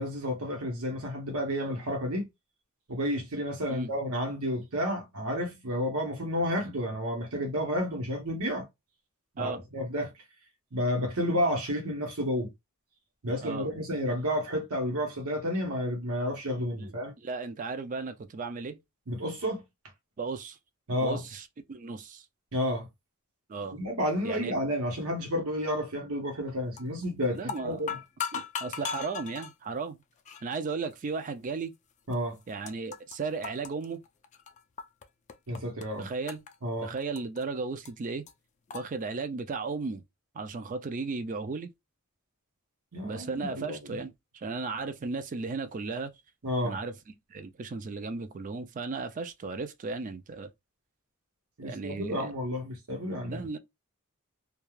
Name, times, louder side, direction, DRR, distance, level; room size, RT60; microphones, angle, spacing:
voice 1, 0.0-2.3 2.9-8.6 9.4-10.1 10.7-12.5 13.2-17.1 19.1-19.6 20.9-21.2 22.5-22.9 23.7-28.0 32.1-32.4 35.5-36.1 36.6-36.9 42.9-44.0 46.4-46.8 51.6-53.5, equal, 80° right, 0.9 m, -31 dB
voice 2, 17.2-18.8 20.2-20.6 21.0-22.2 23.5-23.8 24.2-24.5 27.4-27.8 28.3-30.0 30.4-31.8 32.5-34.0 36.0-36.4 36.8-38.3 38.7-40.0 40.3-41.7 43.0-46.1 46.6-46.9 47.3-50.5 51.6-52.3 53.2-53.6, right 4 dB, 35° right, 0.4 m, -35 dB
sound 1, 26.8-27.1 27.4-29.5 30.3-30.5 31.2-31.3 32.1-32.2 32.4-33.2 33.4-35.0 35.3-35.8 36.3-37.4 37.9-38.0 38.3-38.4 38.7-38.8, left 6 dB, 35° left, 0.3 m, -37 dB
2.3 x 2.3 x 3.1 m
head